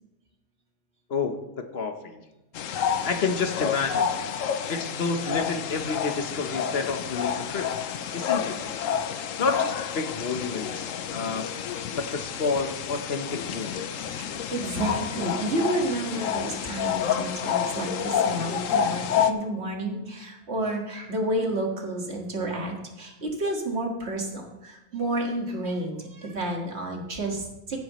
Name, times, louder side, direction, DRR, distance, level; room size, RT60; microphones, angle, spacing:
voice 1, 1.1-2.2 2.8-4.1 4.7-7.7 8.1-8.6 9.4-11.5 11.9-14.2, left 4 dB, 45° left, 6 dB, 1.2 m, -30 dB
sound 1, 2.5-19.3, left 8 dB, 65° left, 1.0 m, -29 dB
voice 2, 14.2-27.8, right 1 dB, 50° right, 1 dB, 2.1 m, -30 dB
15.5 x 9.3 x 3.1 m, 0.95 s
omnidirectional pair, 1.5 m